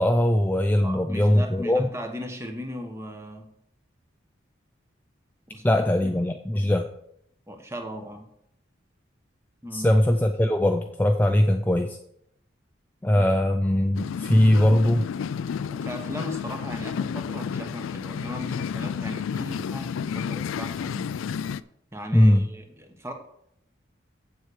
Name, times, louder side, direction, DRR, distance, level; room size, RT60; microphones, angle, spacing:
voice 1, 0.0-1.9 5.6-6.9 9.7-12.0 13.0-15.1 22.1-22.5, left 1 dB, 10° left, 4 dB, 0.4 m, -21 dB
voice 2, 0.8-3.5 5.5-6.2 7.5-8.3 9.6-9.9 13.1-13.3 15.7-21.1 21.9-23.1, equal, 15° right, 4 dB, 1.0 m, -37 dB
sound 1, 13.9-21.6, left 7 dB, 90° left, 0.3 m, -31 dB
7.9 x 7.4 x 4.9 m, 0.73 s
head